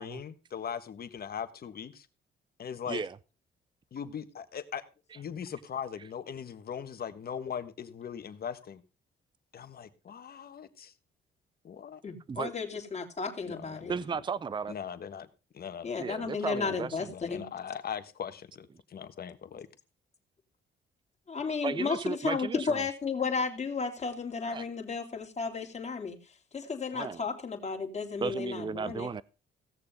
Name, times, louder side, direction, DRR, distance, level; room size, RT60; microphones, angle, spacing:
voice 1, 0.0-2.1 2.6-3.0 3.9-4.8 5.1-8.8 9.5-10.9 11.6-12.0 13.5-14.2 14.7-15.3 15.5-15.9 16.5-19.7, left 8 dB, 50° left, 1.4 m, -40 dB
voice 2, 12.0-13.9 15.8-17.4 21.3-26.2 26.5-29.1, left 5 dB, 35° left, 2.7 m, -33 dB
voice 3, 13.9-14.7 16.0-17.0 21.6-22.9 24.5-24.6 26.9-27.2 28.2-29.2, right 5 dB, 25° right, 0.5 m, -35 dB
17.0 x 6.8 x 5.0 m
cardioid pair, 90°, 20 cm